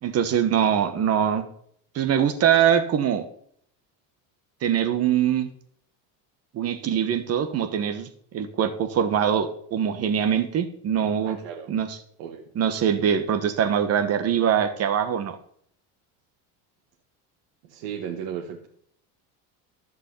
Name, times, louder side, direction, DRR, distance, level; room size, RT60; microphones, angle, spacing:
voice 1, 0.0-1.5 1.9-3.3 4.6-5.5 6.5-11.4 11.7-12.0 12.5-15.4, right 8 dB, 40° right, 9 dB, 1.4 m, -23 dB
voice 2, 11.3-11.8 12.2-12.5 17.6-18.7, right 8 dB, 85° right, 0 dB, 2.1 m, -35 dB
15.0 x 5.5 x 8.4 m, 0.63 s
cardioid pair, 145°, 39 cm